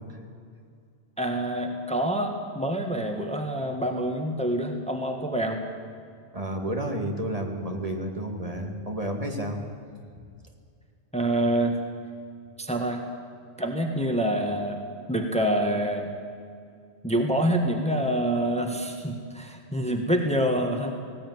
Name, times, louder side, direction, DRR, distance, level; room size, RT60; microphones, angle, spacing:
voice 1, 1.2-5.6 11.1-11.8 12.6-13.0 13.6-14.8 15.1-16.1 17.0-20.9, right 1 dB, 5° left, 4 dB, 1.7 m, -26 dB
voice 2, 6.3-9.6 10.1-10.2, right 1 dB, 35° right, 2 dB, 2.1 m, -31 dB
18.5 x 17.0 x 9.7 m, 2.2 s
omnidirectional pair, 1.1 m